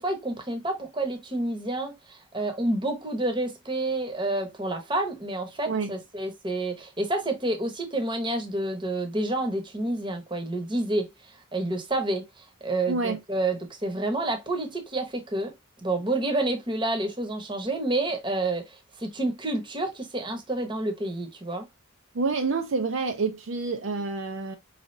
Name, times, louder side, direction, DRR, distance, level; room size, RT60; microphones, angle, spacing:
voice 1, 0.0-15.5 15.8-21.7, right 2 dB, 20° right, 0.9 m, -29 dB
voice 2, 12.9-13.2 22.1-24.6, right 4 dB, 60° right, 0.5 m, -28 dB
4.8 x 3.2 x 2.6 m
head